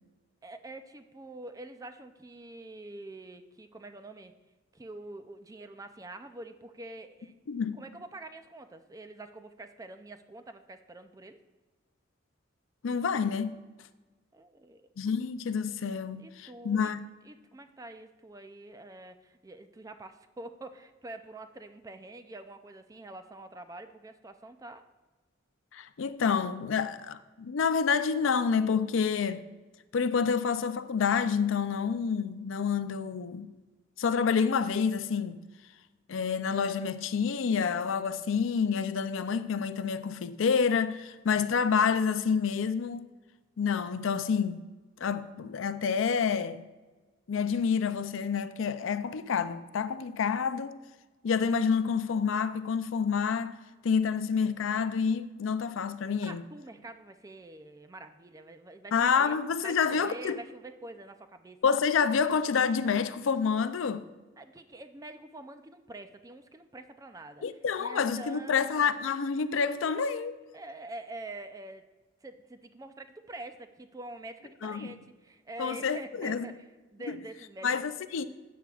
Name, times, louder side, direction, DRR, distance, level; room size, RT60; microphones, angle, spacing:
voice 1, 0.4-4.3 4.7-7.3 7.7-11.4 14.3-14.8 16.2-16.9 17.2-24.8 56.2-59.4 59.6-61.6 64.4-68.9 70.5-71.9 72.2-76.7 76.9-77.8, right 2 dB, 15° right, 0.4 m, -46 dB
voice 2, 7.5-7.8 12.8-13.5 15.0-17.0 25.7-29.4 29.9-33.5 34.0-35.4 36.1-43.0 43.6-44.6 45.0-46.6 47.3-50.8 51.2-53.6 53.8-56.4 58.9-60.4 61.6-64.0 67.4-70.4 74.6-74.9 75.6-76.5 77.1-77.2 77.6-78.2, left 6 dB, 75° left, 0.4 m, -28 dB
12.5 x 8.3 x 2.4 m
head